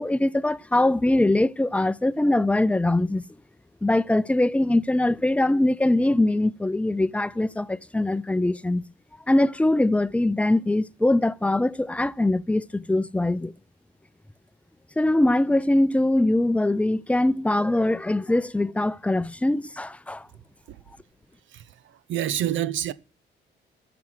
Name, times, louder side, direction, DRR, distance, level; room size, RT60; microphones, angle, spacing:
voice 1, 0.0-3.2 3.8-8.8 9.3-13.5 15.0-20.3, left 1 dB, 5° left, 0.5 m, -22 dB
voice 2, 21.5-22.9, right 11 dB, 75° right, 0.7 m, -28 dB
13.5 x 6.1 x 7.8 m
cardioid pair, 90°, 20 cm